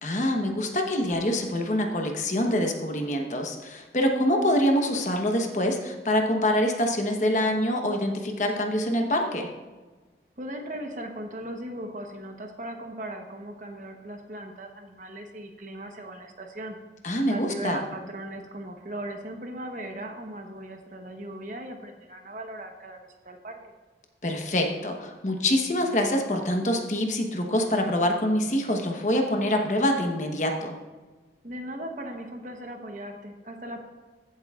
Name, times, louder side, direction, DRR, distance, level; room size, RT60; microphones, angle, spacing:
voice 1, 0.0-9.5 17.0-17.8 24.2-30.8, left 1 dB, 45° left, 3 dB, 1.1 m, -25 dB
voice 2, 10.4-16.8 17.3-23.6 31.4-33.8, right 1 dB, 45° right, 4 dB, 1.0 m, -38 dB
15.0 x 7.8 x 2.4 m, 1.3 s
head